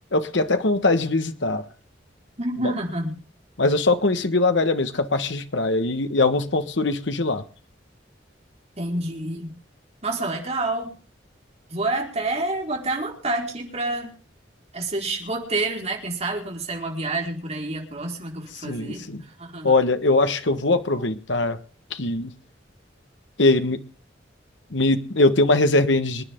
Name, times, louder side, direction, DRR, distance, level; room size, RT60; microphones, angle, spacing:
voice 1, 0.1-1.7 2.6-2.7 3.6-7.4 18.6-19.2 19.6-21.6 21.9-22.3 23.4-23.8 24.7-26.2, left 2 dB, 70° left, 9 dB, 1.4 m, -21 dB
voice 2, 2.4-3.2 8.8-9.5 10.0-10.9 11.7-14.1 14.7-19.7, right 2 dB, 35° right, 0 dB, 5.0 m, -28 dB
27.0 x 10.0 x 3.8 m, 0.37 s
head